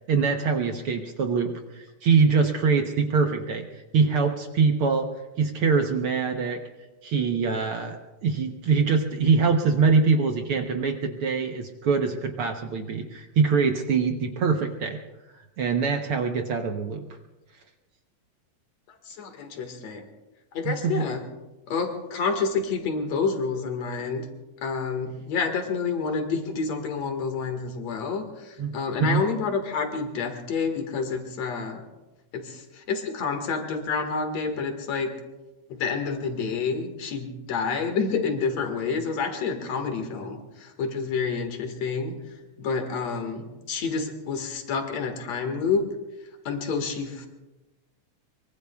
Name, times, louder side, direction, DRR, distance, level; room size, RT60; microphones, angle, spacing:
voice 1, 0.1-3.6 3.9-5.1 5.4-6.6 7.0-15.0 15.6-17.1 20.6-21.0 28.6-28.7 29.0-29.2, right 5 dB, 65° right, 4 dB, 1.4 m, -23 dB
voice 2, 18.9-20.1 20.5-21.2 21.7-24.3 24.6-31.8 32.3-35.1 35.7-42.2 42.6-45.8 46.4-47.3, left 5 dB, 60° left, 5 dB, 2.8 m, -28 dB
24.0 x 24.0 x 2.3 m, 1.1 s
omnidirectional pair, 3.5 m